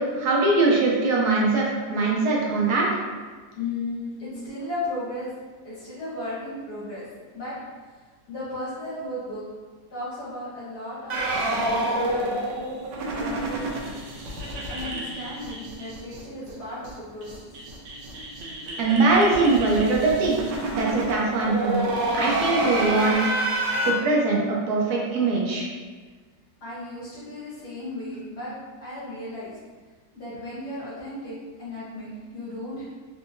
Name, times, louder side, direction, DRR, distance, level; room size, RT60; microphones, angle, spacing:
voice 1, 0.0-2.9 18.8-20.4 20.7-21.9 22.1-23.2 23.9-25.7, right 3 dB, 65° right, -3 dB, 1.2 m, -22 dB
voice 2, 3.5-5.3 5.6-7.0 7.3-7.6 8.3-9.4 9.9-12.5 13.1-13.9 14.7-17.3 26.6-28.5 28.8-29.5 30.1-32.8, left 1 dB, 65° left, -11 dB, 1.5 m, -35 dB
sound 1, 11.1-16.2 16.5-16.6 16.8-16.9 17.2-23.9, right 1 dB, 90° right, 1.3 m, -28 dB
3.6 x 2.6 x 2.6 m, 1.4 s
omnidirectional pair, 1.9 m